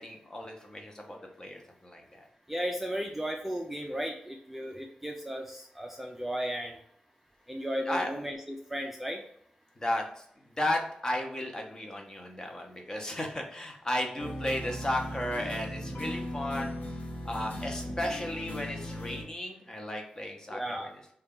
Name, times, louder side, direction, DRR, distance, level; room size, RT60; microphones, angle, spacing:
voice 1, 0.0-2.3 7.8-8.1 9.8-10.2 10.6-16.7 17.2-20.9, left 1 dB, 25° left, 2 dB, 0.7 m, -34 dB
voice 2, 2.5-6.8 7.5-9.2 20.5-20.9, equal, 5° right, 1 dB, 0.3 m, -35 dB
sound 1, 14.2-19.2, left 1 dB, 85° left, 0.9 m, -37 dB
3.9 x 2.3 x 3.6 m, 0.67 s
wide cardioid pair, 125°, 3 cm